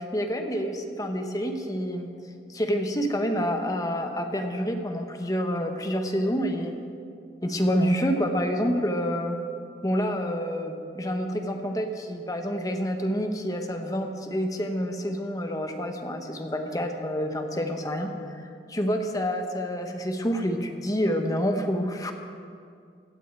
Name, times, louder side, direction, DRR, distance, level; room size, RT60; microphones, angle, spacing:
voice 1, 0.0-2.1 2.5-6.8 7.4-9.4 9.8-22.1, equal, 20° left, 5 dB, 0.9 m, -28 dB
16.0 x 6.3 x 8.8 m, 2.3 s
head